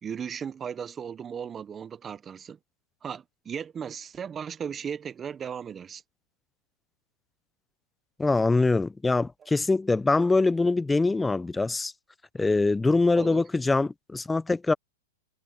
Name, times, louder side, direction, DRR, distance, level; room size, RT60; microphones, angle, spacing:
voice 1, 0.0-2.6 3.0-6.0 13.1-13.4, right 7 dB, 20° right, 1.0 m, -36 dB
voice 2, 8.2-11.9 12.3-14.7, left 3 dB, 10° left, 0.9 m, -23 dB
hypercardioid pair, 115°, 0 cm